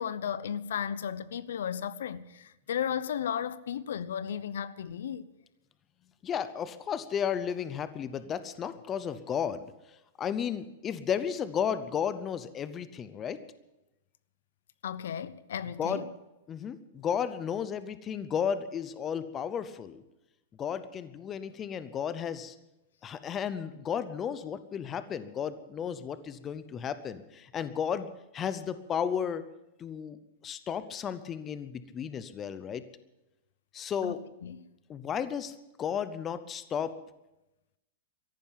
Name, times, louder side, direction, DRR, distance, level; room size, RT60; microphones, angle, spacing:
voice 1, 0.0-5.3 14.8-16.1 34.0-34.1 34.4-34.7, left 8 dB, 85° left, 0.8 m, -34 dB
voice 2, 6.2-9.6 10.2-13.4 15.8-16.0 16.5-20.0 20.6-22.5 23.0-29.4 29.8-30.2 30.4-32.8 33.7-34.2 34.9-36.9, left 8 dB, 20° left, 0.6 m, -33 dB
14.0 x 11.5 x 8.8 m
supercardioid pair, 165°, 0 cm